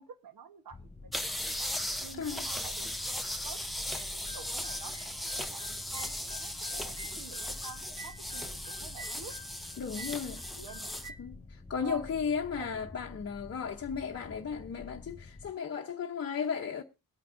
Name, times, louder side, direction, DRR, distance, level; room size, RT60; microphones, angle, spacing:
voice 1, 0.0-2.9 3.4-3.6 4.1-9.3 10.6-11.0 11.8-12.1 12.6-12.9, right 5 dB, 85° right, 1.2 m, -49 dB
sound 1, 0.7-15.5, left 3 dB, 20° left, 2.3 m, -49 dB
sound 2, 1.1-11.1, left 1 dB, ahead, 0.6 m, -37 dB
voice 2, 2.1-2.5 9.8-10.4 11.2-16.8, left 6 dB, 45° left, 0.8 m, -35 dB
sound 3, 3.9-11.2, equal, 55° right, 4.1 m, -50 dB
21.5 x 9.1 x 2.6 m
wide cardioid pair, 175°, 34 cm